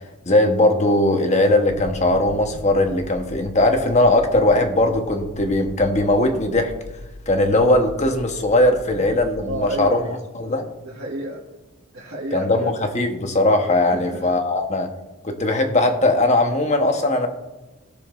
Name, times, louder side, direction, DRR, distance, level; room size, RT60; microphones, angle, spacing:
voice 1, 0.3-6.7 7.3-10.0 10.4-10.7 12.3-14.9 15.2-17.3, left 1 dB, 30° left, 5 dB, 1.1 m, -19 dB
sound 1, 1.7-9.6, left 1 dB, 60° left, 1.8 m, -39 dB
voice 2, 9.4-10.1 10.4-11.4 11.9-12.8 13.9-14.3, right 1 dB, 55° right, -5 dB, 1.7 m, -31 dB
17.5 x 6.9 x 2.5 m, 1.1 s
head